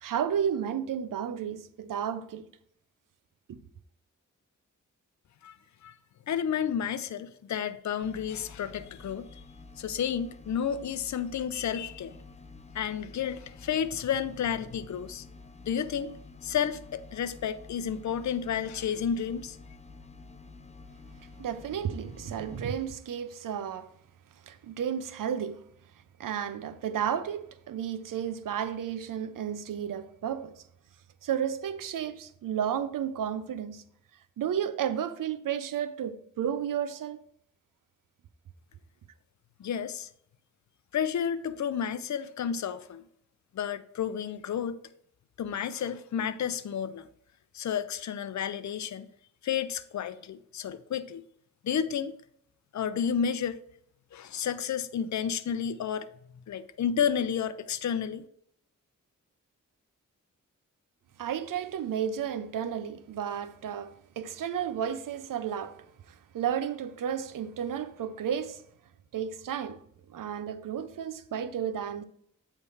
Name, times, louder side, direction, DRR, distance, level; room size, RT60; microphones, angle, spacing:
voice 1, 0.0-2.5 3.5-3.6 21.4-23.9 24.5-25.6 26.2-30.6 31.2-33.9 34.4-37.2 61.2-65.9 66.3-68.6 69.1-69.8 70.1-72.0, right 8 dB, 85° right, 0.6 m, -32 dB
voice 2, 5.4-6.0 6.3-9.4 9.8-12.2 12.7-15.2 15.7-16.1 16.4-19.6 39.6-40.1 40.9-43.0 43.5-44.8 45.4-47.1 47.5-49.1 49.4-51.3 51.6-52.2 52.7-53.6 54.1-56.1 56.5-58.2, left 8 dB, 60° left, 0.6 m, -31 dB
sound 1, 8.0-22.9, left 3 dB, 20° left, 0.6 m, -50 dB
8.3 x 3.4 x 5.6 m
cardioid pair, 70°, 32 cm